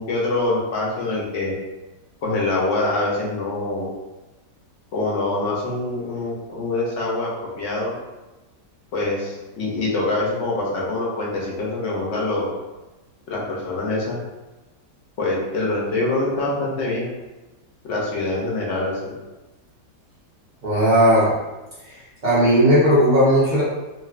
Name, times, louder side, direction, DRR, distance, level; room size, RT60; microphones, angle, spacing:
voice 1, 0.0-1.5 2.2-3.9 4.9-7.9 8.9-12.5 13.3-14.2 15.2-17.1 17.8-19.1, left 2 dB, 60° left, -3 dB, 0.8 m, -24 dB
voice 2, 20.6-21.3 21.9-22.0 22.2-23.6, equal, 50° right, -9 dB, 0.5 m, -16 dB
3.1 x 2.5 x 2.4 m, 1.1 s
omnidirectional pair, 1.9 m